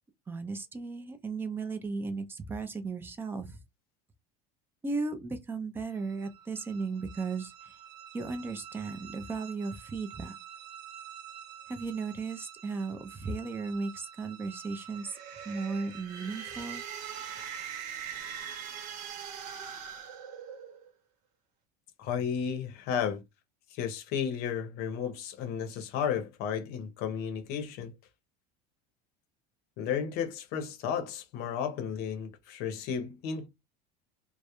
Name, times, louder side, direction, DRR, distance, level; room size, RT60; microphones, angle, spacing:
voice 1, 0.3-3.6 4.8-7.8 8.1-10.4 11.7-15.2 15.5-16.8, right 4 dB, 10° right, 0.3 m, -36 dB
sound 1, 5.9-19.3, right 9 dB, 50° right, 0.6 m, -49 dB
sound 2, 14.8-20.9, right 8 dB, 80° right, 0.8 m, -42 dB
voice 2, 22.0-23.2 23.7-27.9 29.8-33.5, left 7 dB, 55° left, 0.6 m, -33 dB
2.2 x 2.0 x 2.8 m
cardioid pair, 150°, 20 cm